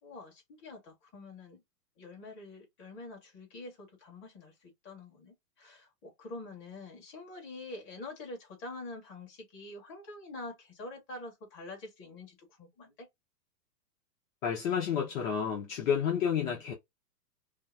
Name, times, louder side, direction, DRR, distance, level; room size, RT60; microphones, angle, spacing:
voice 1, 0.0-1.6 2.0-13.1, left 2 dB, 25° left, 1.8 m, -46 dB
voice 2, 14.4-16.7, left 8 dB, 50° left, 1.1 m, -30 dB
5.4 x 2.2 x 2.6 m
hypercardioid pair, 155°, 50 cm